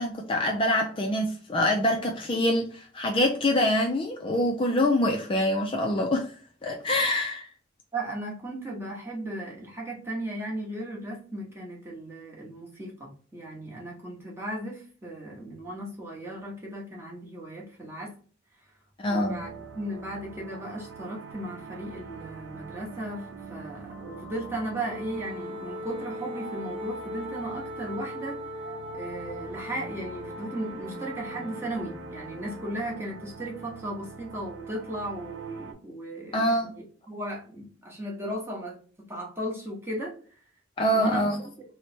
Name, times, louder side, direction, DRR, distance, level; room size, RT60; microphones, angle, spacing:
voice 1, 0.0-6.3 6.6-7.5 19.0-19.4 36.3-36.7 40.8-41.4, left 1 dB, 25° left, 0.3 m, -25 dB
voice 2, 7.9-18.1 19.1-28.4 28.9-38.8 39.1-40.1 40.9-41.3, right 1 dB, 10° right, 0.9 m, -36 dB
sound 1, 19.2-35.7, right 4 dB, 75° right, 0.6 m, -44 dB
Wind instrument woodwind instrument, 24.8-32.8, left 1 dB, 25° right, 0.5 m, -39 dB
3.1 x 2.1 x 4.2 m
head